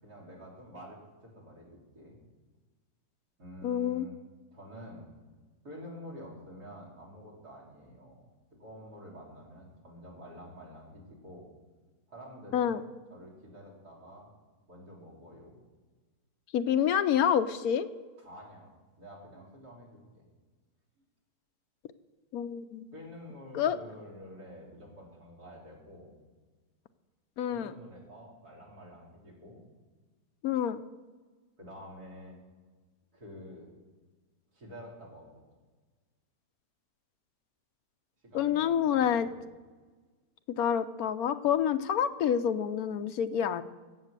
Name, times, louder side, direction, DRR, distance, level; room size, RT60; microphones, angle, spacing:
voice 1, 0.0-1.7 1.9-2.2 3.4-4.1 4.5-5.0 5.6-11.5 12.1-14.3 14.7-15.5 18.2-20.3 21.0-21.1 22.9-26.1 27.5-29.6 31.6-32.4 33.1-33.7 34.5-35.4 38.3-39.3, equal, 70° right, -2 dB, 4.2 m, -49 dB
voice 2, 3.6-4.1 12.5-12.8 16.5-17.9 22.3-22.9 23.5-23.8 27.4-27.7 30.4-30.8 38.3-39.3 40.6-43.6, left 9 dB, 70° left, 11 dB, 1.0 m, -27 dB
16.5 x 7.8 x 6.7 m, 1.3 s
omnidirectional pair, 1.7 m